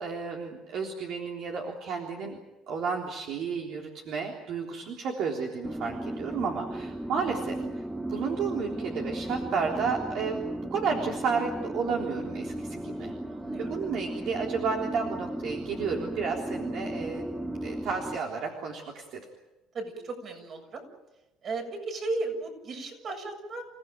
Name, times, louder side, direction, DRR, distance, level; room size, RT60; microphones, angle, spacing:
voice 1, 0.0-2.4 2.7-7.6 8.1-10.4 10.7-13.1 13.6-17.3 17.6-19.2, right 5 dB, 60° right, 1 dB, 3.6 m, -32 dB
sound 1, 5.6-18.2, right 1 dB, 5° right, 1.0 m, -35 dB
voice 2, 13.3-13.7 19.7-20.8 21.4-23.6, right 3 dB, 45° right, 4 dB, 7.4 m, -35 dB
29.0 x 17.0 x 9.2 m, 1.0 s
cardioid pair, 120°, 0 cm